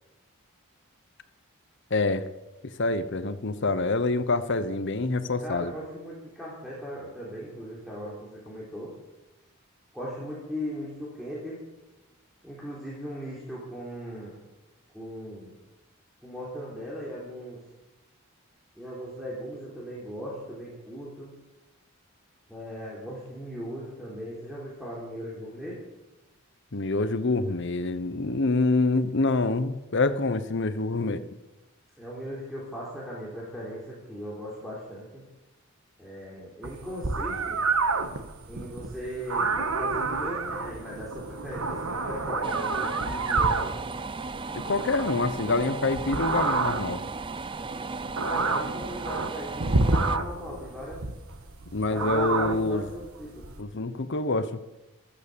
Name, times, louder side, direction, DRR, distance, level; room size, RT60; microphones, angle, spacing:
voice 1, 1.9-2.3 2.6-5.7 26.7-31.2 44.5-47.0 51.7-52.8 53.6-54.6, left 3 dB, 55° left, 12 dB, 0.8 m, -26 dB
voice 2, 5.4-9.0 9.9-11.6 12.4-14.3 14.9-15.5 16.2-17.6 18.8-21.3 22.5-25.8 32.0-35.2 36.0-37.6 38.5-43.6 48.2-51.0 51.9-53.5, equal, ahead, -7 dB, 3.7 m, -38 dB
sound 1, 36.6-53.6, right 3 dB, 70° right, 1.5 m, -29 dB
sound 2, 42.4-50.2, right 4 dB, 20° right, 0.5 m, -36 dB
15.5 x 13.5 x 6.9 m, 1.0 s
head